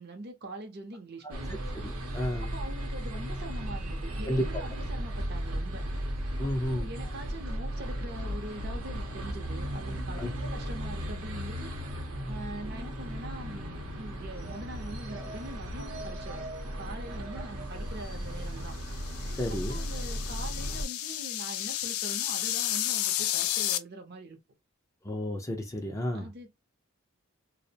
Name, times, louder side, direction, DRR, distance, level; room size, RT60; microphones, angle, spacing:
voice 1, 0.0-1.6 2.4-5.9 6.4-11.7 12.2-16.4 16.8-18.7 19.5-24.4 26.1-26.6, right 1 dB, 50° right, 0.6 m, -43 dB
voice 2, 1.2-2.5 4.3-4.6 6.4-6.9 10.2-10.3 19.4-19.8 25.0-26.3, equal, 15° left, 0.4 m, -32 dB
sound 1, 1.3-20.8, equal, 85° right, 0.7 m, -36 dB
sound 2, 18.7-23.8, left 12 dB, 80° left, 0.3 m, -32 dB
2.5 x 2.0 x 2.7 m
head